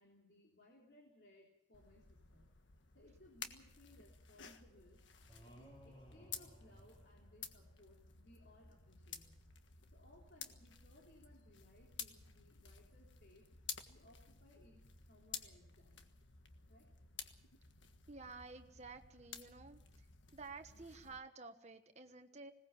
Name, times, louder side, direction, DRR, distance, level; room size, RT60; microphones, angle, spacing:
voice 1, 0.0-2.5 2.9-5.0 5.4-9.4 9.9-13.5 13.9-16.0 16.7-16.9, left 1 dB, 65° left, -2 dB, 3.7 m, -65 dB
sound 1, 1.7-21.2, left 7 dB, 85° left, 1.6 m, -53 dB
sound 2, 5.3-7.8, equal, 25° left, 3.8 m, -60 dB
voice 2, 18.1-19.8 20.3-22.5, right 4 dB, 35° right, 6 dB, 1.3 m, -52 dB
20.5 x 18.5 x 7.2 m, 0.82 s
head